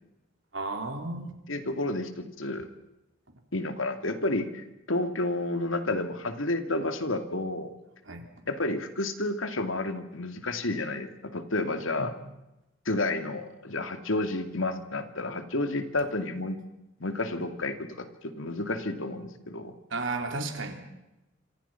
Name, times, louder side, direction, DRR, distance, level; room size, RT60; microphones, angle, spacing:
voice 1, 0.5-1.4 8.1-8.2 12.0-12.1 19.9-20.7, right 3 dB, 70° right, 4 dB, 4.2 m, -33 dB
voice 2, 1.5-2.7 3.5-7.7 8.5-12.1 12.9-16.6 17.0-19.7, left 2 dB, 90° left, 8 dB, 2.5 m, -31 dB
27.5 x 26.5 x 5.9 m, 0.97 s
head